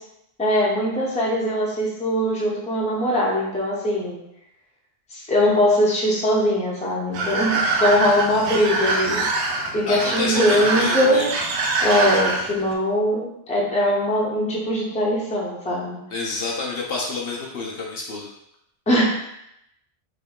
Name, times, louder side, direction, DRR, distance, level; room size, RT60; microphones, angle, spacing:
voice 1, 0.4-4.2 5.1-9.3 9.7-11.3 11.8-16.0 18.9-19.0, equal, 5° left, -4 dB, 0.6 m, -21 dB
sound 1, 7.1-12.7, right 3 dB, 70° right, 0.9 m, -24 dB
voice 2, 9.8-11.3 16.1-18.3, left 3 dB, 60° left, -3 dB, 0.8 m, -28 dB
3.6 x 2.6 x 3.6 m, 0.80 s
omnidirectional pair, 1.2 m